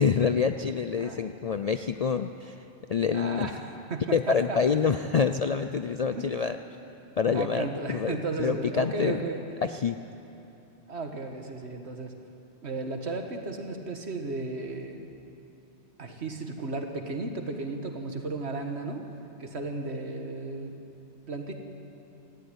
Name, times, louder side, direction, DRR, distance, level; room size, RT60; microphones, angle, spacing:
voice 1, 0.0-2.6 2.9-3.5 4.1-6.6 7.2-9.2 9.6-10.0, left 6 dB, 55° left, 9 dB, 0.4 m, -27 dB
voice 2, 1.0-1.4 3.1-4.6 6.1-6.3 7.3-9.4 10.9-12.1 12.6-15.1 16.0-19.1 19.4-20.8 21.3-21.5, right 3 dB, 65° right, 4 dB, 1.9 m, -34 dB
17.5 x 15.0 x 9.8 m, 2.9 s
omnidirectional pair, 1.2 m